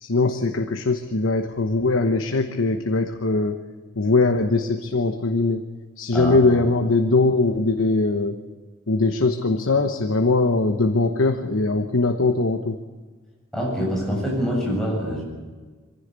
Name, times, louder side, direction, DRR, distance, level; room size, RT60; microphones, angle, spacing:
voice 1, 0.0-3.6 4.0-5.6 6.0-8.4 8.9-12.8, left 3 dB, 80° left, 6 dB, 1.1 m, -21 dB
voice 2, 13.5-15.2, equal, ahead, -3 dB, 7.9 m, -25 dB
23.5 x 15.5 x 8.2 m, 1.4 s
head